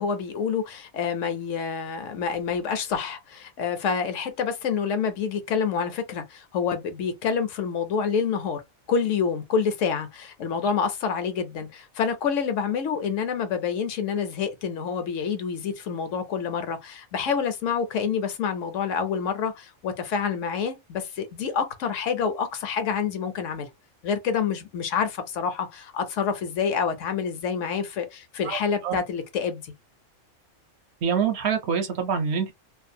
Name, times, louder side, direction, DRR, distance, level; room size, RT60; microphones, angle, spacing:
voice 1, 0.0-8.6 8.9-23.7 24.0-29.7, left 6 dB, 80° left, 1.0 m, -27 dB
voice 2, 31.0-32.5, right 6 dB, 65° right, 0.8 m, -25 dB
2.5 x 2.3 x 2.6 m
omnidirectional pair, 1.3 m